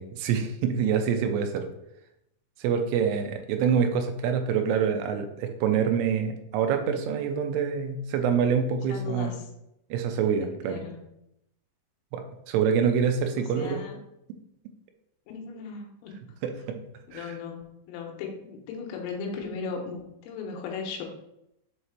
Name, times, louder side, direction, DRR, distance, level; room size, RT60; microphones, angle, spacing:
voice 1, 0.0-1.6 2.6-9.4 9.9-10.8 12.1-13.8 16.4-16.8 17.1-17.3, right 7 dB, 85° right, 5 dB, 3.1 m, -26 dB
voice 2, 8.9-9.5 10.7-11.0 13.6-14.0 15.3-16.2 17.1-21.0, left 5 dB, 90° left, 1 dB, 3.7 m, -37 dB
7.9 x 2.8 x 4.7 m, 0.81 s
omnidirectional pair, 5.9 m